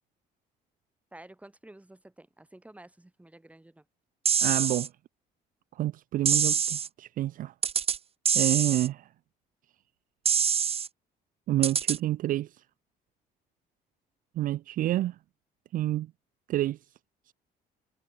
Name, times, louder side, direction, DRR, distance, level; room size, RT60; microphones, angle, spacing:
voice 1, 1.1-3.8, right 1 dB, 10° right, 5.5 m, -51 dB
sound 1, 4.3-4.9 6.3-6.9 7.6-8.0 8.3-8.9 10.3-10.9 11.6-12.0, right 7 dB, 35° right, 1.1 m, -25 dB
voice 2, 4.4-4.9 5.8-7.5 8.3-9.1 11.5-12.5 14.4-15.2 15.7-16.1 16.5-16.8, right 14 dB, 55° right, 0.4 m, -28 dB
cardioid pair, 110°, 17 cm